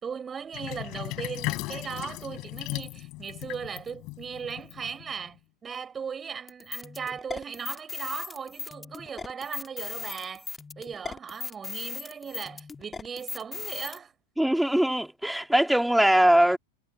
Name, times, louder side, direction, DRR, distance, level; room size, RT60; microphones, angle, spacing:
voice 1, 0.0-5.4 5.6-10.5 10.8-14.1, right 6 dB, 20° right, 4.9 m, -37 dB
Sink (filling or washing), 0.5-5.3, left 22 dB, 40° left, 4.5 m, -37 dB
sound 1, 6.5-14.0, left 4 dB, 15° left, 2.5 m, -38 dB
voice 2, 14.4-16.6, right 1 dB, ahead, 3.7 m, -21 dB
figure-of-eight pair, 90°, 0 cm